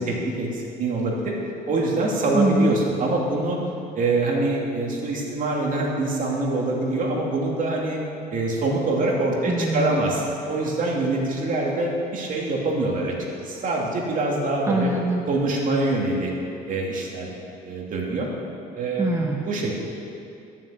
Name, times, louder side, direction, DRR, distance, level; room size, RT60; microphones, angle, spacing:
voice 1, 0.0-1.3 1.7-3.6 3.9-8.0 8.3-14.9 15.3-16.3 16.7-17.3 17.6-18.3 18.7-19.1 19.5-19.8, right 2 dB, 50° right, -2 dB, 2.9 m, -24 dB
voice 2, 2.3-2.8 9.5-10.1 14.7-15.3 19.0-19.5, right 2 dB, 15° right, 0 dB, 1.0 m, -23 dB
13.0 x 7.4 x 8.2 m, 2.6 s
cardioid pair, 110°, 17 cm